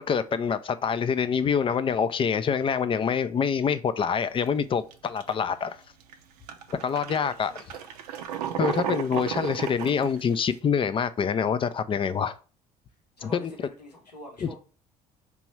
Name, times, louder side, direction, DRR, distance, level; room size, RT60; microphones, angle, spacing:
voice 1, 0.0-5.8 6.8-7.5 8.6-12.4 13.2-13.5 14.4-14.5, left 6 dB, 25° left, 0.4 m, -26 dB
sound 1, 4.2-4.5 4.9-5.4 6.0-6.1 6.5-10.5, right 9 dB, 75° right, 0.5 m, -33 dB
voice 2, 6.7-7.1 7.4-7.9 13.2-14.6, left 1 dB, 90° left, 0.9 m, -46 dB
4.8 x 3.0 x 3.1 m
figure-of-eight pair, 55°, 20 cm